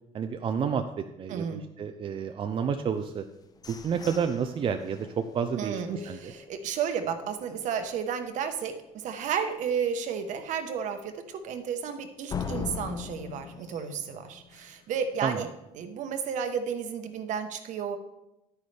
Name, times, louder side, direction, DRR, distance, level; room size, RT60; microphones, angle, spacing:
voice 1, 0.1-0.8 1.2-3.2 3.7-6.3 15.2-15.5, right 7 dB, 35° right, 7 dB, 0.5 m, -30 dB
voice 2, 1.3-1.6 5.5-15.5 15.8-18.0, right 7 dB, 60° right, 7 dB, 1.1 m, -32 dB
sound 1, 3.0-6.9 7.4-7.5 7.8-8.2 8.6-8.7 9.2-9.3 12.3-15.0, left 6 dB, 25° left, 0.7 m, -40 dB
10.0 x 9.5 x 3.4 m, 0.94 s
cardioid pair, 115°, 14 cm